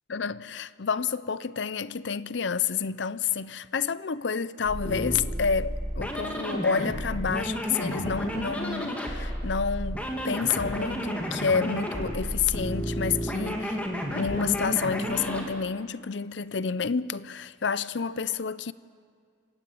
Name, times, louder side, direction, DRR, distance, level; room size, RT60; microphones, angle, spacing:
voice 1, 0.1-13.8 14.1-18.7, left 6 dB, 65° left, 0.6 m, -29 dB
sound 1, 4.6-15.5, equal, 5° left, 2.4 m, -31 dB
26.5 x 15.5 x 8.7 m
head